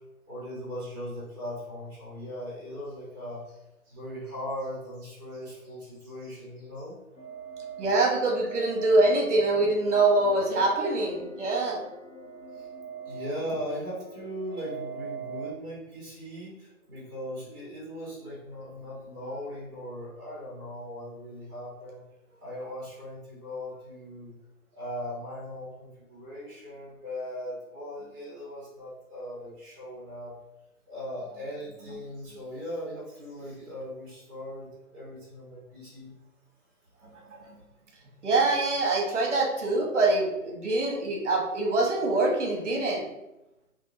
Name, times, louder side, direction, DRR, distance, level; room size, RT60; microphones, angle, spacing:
voice 1, 0.3-3.6 3.9-7.0 12.5-12.7 13.0-22.0 22.4-24.3 24.7-30.3 30.9-36.1, equal, 15° right, -6 dB, 1.0 m, -39 dB
sound 1, 7.2-15.5, right 6 dB, 60° left, 1.1 m, -42 dB
voice 2, 7.8-11.9 37.3-37.6 38.2-43.1, right 2 dB, 55° right, 0 dB, 1.0 m, -24 dB
2.7 x 2.5 x 2.5 m, 0.92 s
figure-of-eight pair, 150°, 44 cm